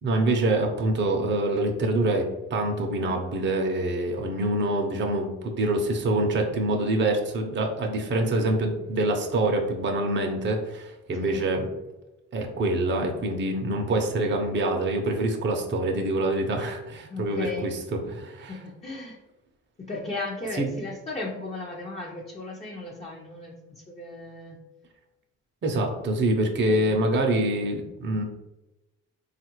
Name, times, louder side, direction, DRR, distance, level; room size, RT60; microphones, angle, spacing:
voice 1, 0.0-11.7 12.3-18.6 20.6-20.7 25.6-28.2, right 1 dB, 35° right, 2 dB, 0.6 m, -25 dB
voice 2, 17.1-17.7 18.5-19.2 19.8-24.6 26.6-27.0, left 2 dB, 20° left, -3 dB, 0.6 m, -36 dB
3.6 x 2.4 x 3.0 m, 1.0 s
supercardioid pair, 75°, 33 cm